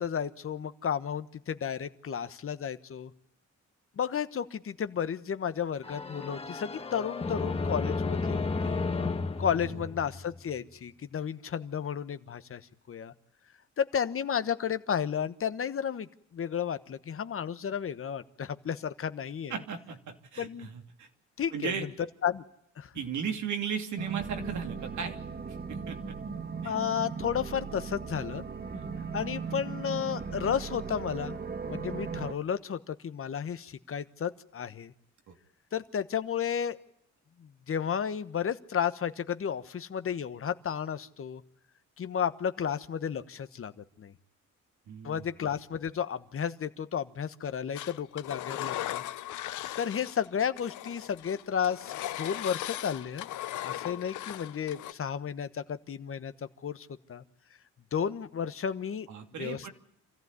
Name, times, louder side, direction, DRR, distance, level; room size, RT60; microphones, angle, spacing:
voice 1, 0.0-3.1 4.0-8.9 9.4-12.6 12.9-13.1 13.8-16.1 16.3-19.5 20.4-20.7 21.4-21.7 22.2-22.4 22.8-22.9 26.6-28.4 29.1-31.4 31.6-34.9 35.7-36.8 37.4-41.4 42.0-44.1 45.0-49.0 49.8-53.3 53.6-56.3 56.6-57.2 57.9-59.1 59.4-59.7, left 8 dB, 45° left, 11 dB, 1.3 m, -33 dB
sound 1, 5.8-10.6, left 4 dB, 20° left, 1.7 m, -32 dB
voice 2, 19.5-21.1 21.5-21.9 22.9-25.2 25.5-26.2 26.6-26.7 28.7-28.8 35.3-35.4 44.9-45.2 59.1-59.7, right 7 dB, 70° right, 5 dB, 3.0 m, -36 dB
sound 2, 24.0-32.3, right 5 dB, 30° right, 1.6 m, -37 dB
Engine, 47.8-50.3 50.6-54.9, left 14 dB, 80° left, 0.9 m, -38 dB
27.0 x 14.5 x 9.6 m, 0.74 s
cardioid pair, 90°, 30 cm